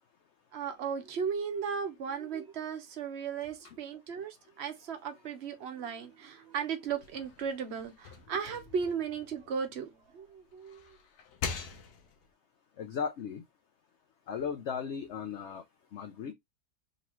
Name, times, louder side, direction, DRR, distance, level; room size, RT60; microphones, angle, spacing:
voice 1, 0.5-11.0, right 6 dB, 50° right, 1.0 m, -36 dB
sound 1, 6.9-10.1 10.5-12.3, left 6 dB, 85° left, 1.3 m, -43 dB
voice 2, 12.8-13.4 14.3-15.6 15.9-16.3, left 6 dB, 65° left, 0.7 m, -36 dB
3.9 x 2.9 x 2.9 m
omnidirectional pair, 1.7 m